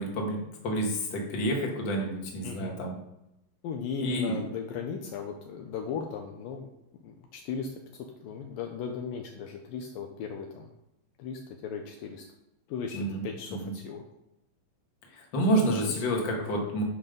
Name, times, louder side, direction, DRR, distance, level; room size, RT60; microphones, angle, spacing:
voice 1, 0.0-3.0 4.0-4.4 12.9-13.2 13.5-13.7 15.2-16.8, right 1 dB, 40° left, 0 dB, 2.1 m, -29 dB
voice 2, 3.6-6.7 7.0-10.7 11.2-12.3 12.7-14.0 15.3-15.5 15.8-16.5, left 6 dB, 75° left, 3 dB, 2.4 m, -37 dB
9.8 x 5.8 x 5.3 m, 0.87 s
omnidirectional pair, 4.3 m